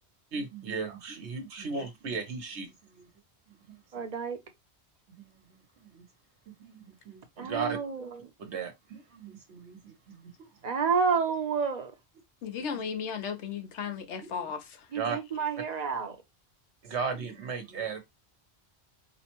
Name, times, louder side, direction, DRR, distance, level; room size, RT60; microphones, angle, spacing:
voice 1, 0.3-3.1 3.5-3.8 5.1-6.0 6.5-7.8 8.4-10.7 12.5-12.9 14.2-14.5 14.9-15.2 16.8-18.0, right 5 dB, 85° right, 1.3 m, -37 dB
voice 2, 3.9-4.4 7.4-8.3 10.6-11.9 14.9-16.2, right 6 dB, 45° right, 0.7 m, -29 dB
voice 3, 12.4-14.6, left 6 dB, 90° left, 1.0 m, -35 dB
4.9 x 2.2 x 2.9 m
omnidirectional pair, 1.1 m